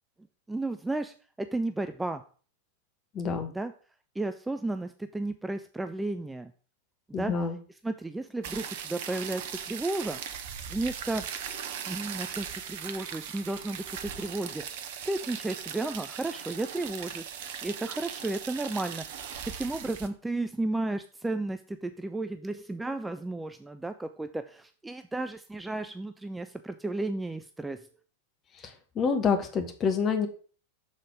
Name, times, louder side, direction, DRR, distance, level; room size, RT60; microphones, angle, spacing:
voice 1, 0.5-2.2 3.5-3.7 4.2-6.5 7.2-7.3 7.8-10.2 10.7-11.2 11.9-17.3 17.6-19.3 19.6-27.9, right 2 dB, 5° right, 9 dB, 0.3 m, -33 dB
voice 2, 3.1-3.5 7.1-7.6 28.9-30.3, left 5 dB, 25° left, 6 dB, 1.1 m, -27 dB
sound 1, 8.4-20.1, right 8 dB, 50° right, 0.6 m, -39 dB
6.5 x 4.0 x 4.9 m, 0.40 s
figure-of-eight pair, 90°, 0 cm